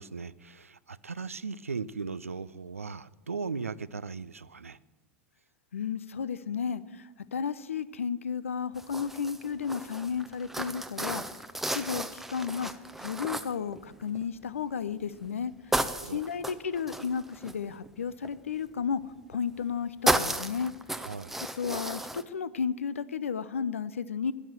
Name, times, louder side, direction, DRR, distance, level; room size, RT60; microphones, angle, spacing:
voice 1, 0.0-4.8 16.0-16.2 21.0-21.3, right 5 dB, 80° right, 0.4 m, -38 dB
voice 2, 5.7-11.2 11.7-12.7 13.0-15.5 16.0-19.0 19.3-20.7 21.6-24.3, left 6 dB, 75° left, 0.6 m, -33 dB
sound 1, 8.8-14.4 14.9-15.3 15.7-18.3 19.3-19.7 20.1-22.2, right 1 dB, 5° right, 0.6 m, -33 dB
10.5 x 9.8 x 7.6 m
figure-of-eight pair, 85°, 7 cm